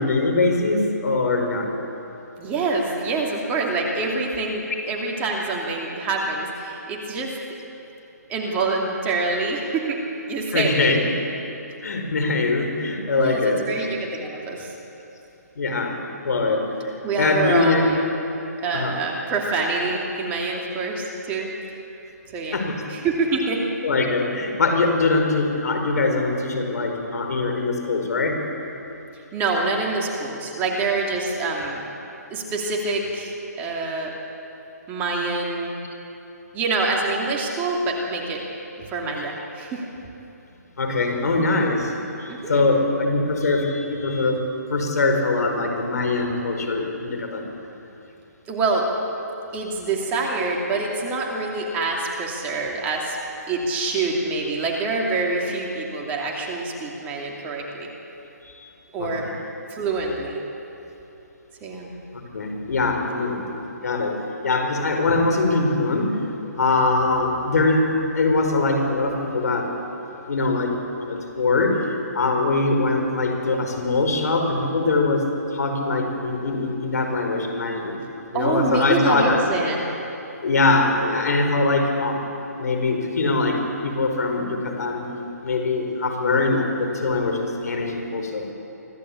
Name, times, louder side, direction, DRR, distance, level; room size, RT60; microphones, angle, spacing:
voice 1, 0.0-1.7 10.5-11.0 11.8-13.9 15.6-16.0 16.2-16.6 17.2-17.9 18.7-19.0 22.5-22.8 23.8-28.4 40.8-41.9 42.2-47.5 58.4-58.7 59.0-59.3 62.1-66.1 66.6-69.7 70.3-71.8 72.1-75.2 75.5-78.0 78.3-79.4 80.4-82.2 82.6-85.0 85.4-88.5, left 3 dB, 65° left, 4 dB, 4.9 m, -22 dB
voice 2, 2.4-7.3 8.3-10.0 10.3-10.9 13.2-14.7 17.0-18.0 18.6-21.5 22.3-22.6 22.9-23.6 29.3-31.8 32.3-34.1 34.9-35.7 36.5-38.4 38.8-39.8 42.3-42.7 48.5-48.9 49.5-53.2 53.5-57.9 58.9-59.2 59.7-60.4 61.6-61.9 78.3-79.9, right 3 dB, 20° right, -1 dB, 2.7 m, -26 dB
25.0 x 15.5 x 8.6 m, 3.0 s
hypercardioid pair, 150°, 9 cm